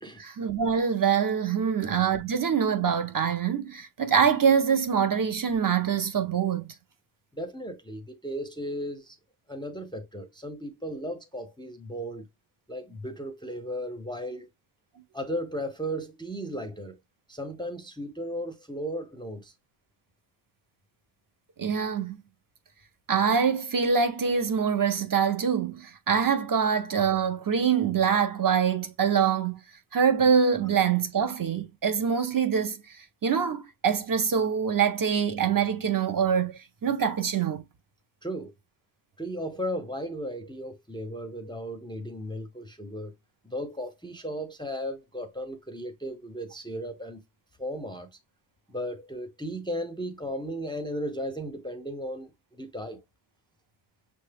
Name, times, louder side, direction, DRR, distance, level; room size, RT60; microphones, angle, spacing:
voice 1, 0.2-6.7 21.6-22.2 23.1-29.6 29.9-32.8 33.2-37.6, right 7 dB, 45° right, 0.5 m, -24 dB
voice 2, 7.3-9.2 9.5-12.2 12.7-14.5 15.1-17.0 17.3-19.5 38.2-38.5 39.2-43.1 43.4-47.2 47.6-48.1 48.7-53.0, equal, 10° left, 0.4 m, -35 dB
6.0 x 2.2 x 3.3 m
wide cardioid pair, 145°, 48 cm